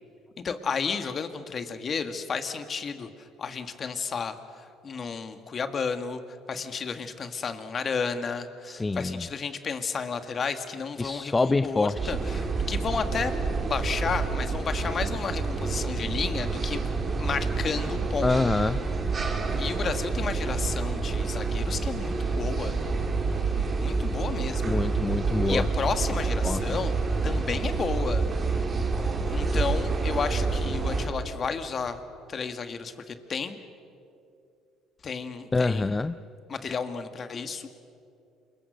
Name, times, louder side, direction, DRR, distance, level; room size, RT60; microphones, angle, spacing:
voice 1, 0.4-13.3 13.6-16.8 17.2-18.3 19.6-22.8 23.8-24.8 25.4-27.0 27.2-28.2 29.3-32.0 32.3-33.6 35.0-35.9 36.5-37.7, left 5 dB, 40° left, 8 dB, 1.9 m, -32 dB
voice 2, 8.7-9.2 11.0-12.1 18.2-18.8 24.6-25.7 26.4-26.6 35.5-36.2, left 3 dB, 20° left, 13 dB, 0.5 m, -26 dB
sound 1, 11.9-31.1, right 4 dB, 35° right, 3.7 m, -28 dB
27.5 x 22.5 x 6.5 m, 2.5 s
supercardioid pair, 85°, 0 cm